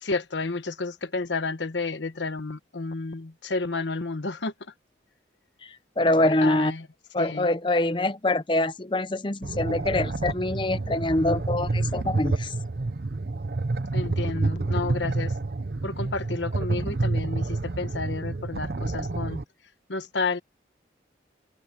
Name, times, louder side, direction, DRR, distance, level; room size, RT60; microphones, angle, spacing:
voice 1, 0.0-4.5 6.4-6.9 7.2-7.5 13.9-15.3 15.8-19.4 19.9-20.4, left 3 dB, 80° left, 1.2 m, -31 dB
voice 2, 6.0-6.7 7.1-12.5, left 1 dB, 25° left, 0.7 m, -24 dB
sound 1, 9.4-19.4, right 2 dB, 55° right, 0.7 m, -29 dB
head